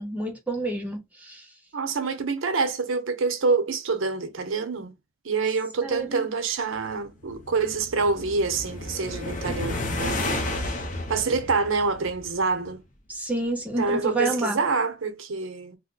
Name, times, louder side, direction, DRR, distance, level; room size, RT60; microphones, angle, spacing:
voice 1, 0.0-1.5 5.8-6.3 13.1-14.6, right 2 dB, 10° right, 1.0 m, -29 dB
voice 2, 1.7-5.0 5.2-10.3 11.1-12.8 13.8-15.8, right 4 dB, 80° right, 0.7 m, -26 dB
sound 1, 7.0-12.5, left 2 dB, 40° left, 0.7 m, -32 dB
2.8 x 2.1 x 3.8 m
head